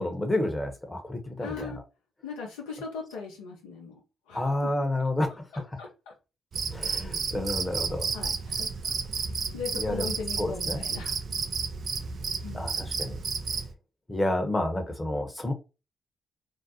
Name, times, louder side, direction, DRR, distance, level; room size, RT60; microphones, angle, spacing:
voice 1, 0.0-1.7 4.3-5.3 6.7-8.1 9.7-10.1 10.4-10.8 12.5-13.2 14.1-15.5, left 1 dB, 20° left, 0.8 m, -29 dB
voice 2, 1.4-1.8 2.2-4.0 4.3-4.7 5.5-6.1 7.5-7.6 8.1-8.7 9.5-11.2 12.4-12.7, left 5 dB, 80° left, 0.6 m, -39 dB
Cricket, 6.5-13.7, right 5 dB, 55° right, 0.4 m, -32 dB
2.6 x 2.0 x 2.7 m
hypercardioid pair, 45°, 0 cm